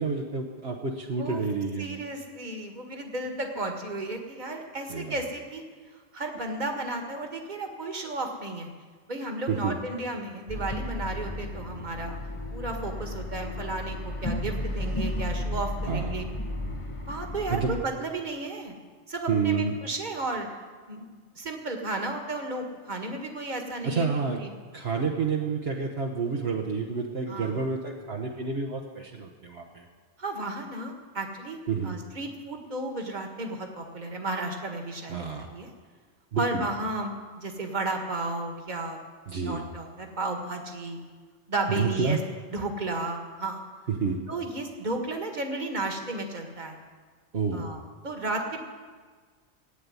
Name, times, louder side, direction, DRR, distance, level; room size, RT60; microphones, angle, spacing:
voice 1, 0.0-1.9 4.9-5.2 9.5-9.8 15.9-16.2 17.5-17.8 19.3-19.8 23.8-24.4 24.7-29.8 31.7-31.9 35.1-35.5 36.3-36.6 39.3-39.6 41.8-42.2 43.9-44.2 47.3-47.7, right 5 dB, 60° right, 0 dB, 1.4 m, -29 dB
voice 2, 1.8-5.6 6.1-8.7 9.1-12.2 12.5-16.3 17.1-18.8 19.1-20.5 20.9-24.1 24.4-24.5 27.3-27.6 30.2-35.7 36.3-39.0 39.4-41.0 41.5-42.2 42.5-43.6 44.3-46.8 47.5-48.6, right 2 dB, 40° right, 3 dB, 1.9 m, -33 dB
sound 1, 10.5-17.8, left 1 dB, 30° left, 1.2 m, -33 dB
16.5 x 8.7 x 9.6 m, 1.5 s
omnidirectional pair, 1.2 m